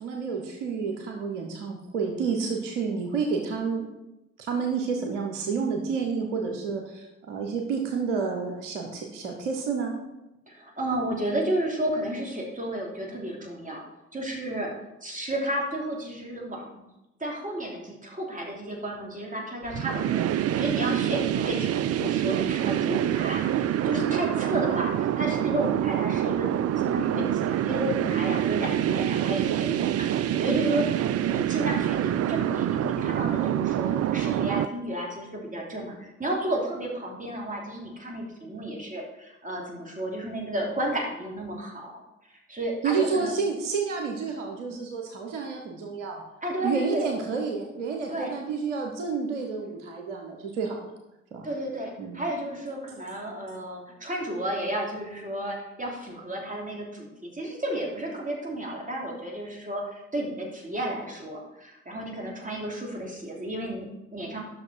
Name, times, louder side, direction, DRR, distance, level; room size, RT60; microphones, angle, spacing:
voice 1, 0.0-3.9 4.4-10.0 42.8-46.2 46.6-50.9 51.3-51.5 52.0-52.2, right 5 dB, 85° right, 2 dB, 1.0 m, -30 dB
voice 2, 10.5-13.8 14.1-14.7 15.0-16.8 17.2-41.9 42.3-43.3 46.4-47.0 48.1-48.3 51.4-64.4, right 1 dB, 20° right, -1 dB, 3.2 m, -32 dB
sound 1, 19.7-34.6, right 11 dB, 45° right, 0.5 m, -26 dB
11.5 x 6.3 x 4.5 m, 0.94 s
hypercardioid pair, 45°, 35 cm